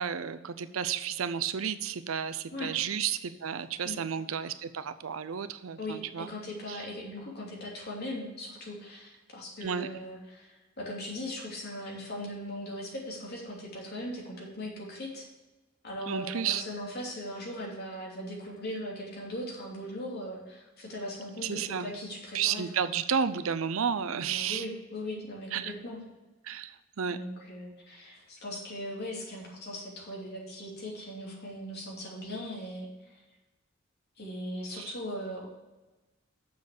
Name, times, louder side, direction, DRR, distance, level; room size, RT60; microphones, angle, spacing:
voice 1, 0.0-6.3 6.7-6.8 9.6-9.9 16.1-16.6 21.4-21.9 22.3-24.6 25.5-25.7 26.4-27.2 34.7-34.9, right 7 dB, 85° right, 12 dB, 0.6 m, -32 dB
voice 2, 5.8-15.3 15.8-22.6 24.1-26.0 27.1-33.2 34.2-35.5, left 1 dB, 50° left, -3 dB, 2.9 m, -39 dB
7.1 x 6.4 x 6.6 m, 1.1 s
head